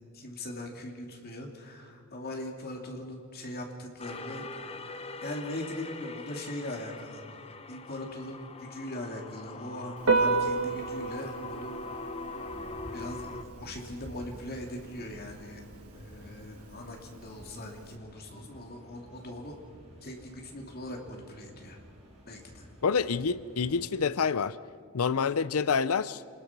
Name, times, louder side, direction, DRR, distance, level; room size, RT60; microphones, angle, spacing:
voice 1, 0.1-7.2 7.7-11.8 12.9-15.6 16.0-19.6 20.0-21.8 22.3-22.7, left 1 dB, 45° left, 1 dB, 3.0 m, -40 dB
sound 1, 4.0-13.4, left 3 dB, 30° left, 0.9 m, -42 dB
Piano, 10.0-17.9, right 4 dB, 85° right, 2.0 m, -33 dB
sound 2, 12.4-24.0, equal, 30° right, 6.9 m, -51 dB
voice 2, 22.8-24.6 24.9-26.2, left 5 dB, 80° left, 17 dB, 0.6 m, -27 dB
27.0 x 20.5 x 6.1 m, 2.2 s
head